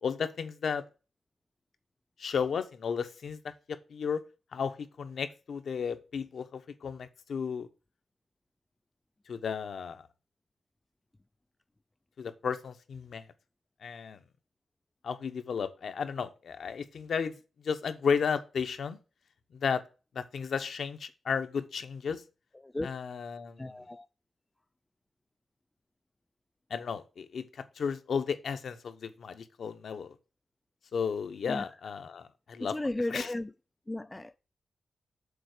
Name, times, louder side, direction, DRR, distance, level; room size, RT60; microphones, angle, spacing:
voice 1, 0.0-0.8 2.2-4.2 4.5-7.7 9.3-10.0 12.2-13.2 13.8-14.2 15.0-17.3 17.6-19.0 19.5-19.8 20.1-22.2 22.8-23.7 26.7-27.5 27.8-30.1 30.9-32.7 33.1-33.3, left 6 dB, 55° left, 0.9 m, -33 dB
voice 2, 23.6-24.1 31.5-31.7 32.6-33.5 33.9-34.4, left 2 dB, 10° left, 0.3 m, -34 dB
6.8 x 4.2 x 6.6 m
wide cardioid pair, 175°, 0 cm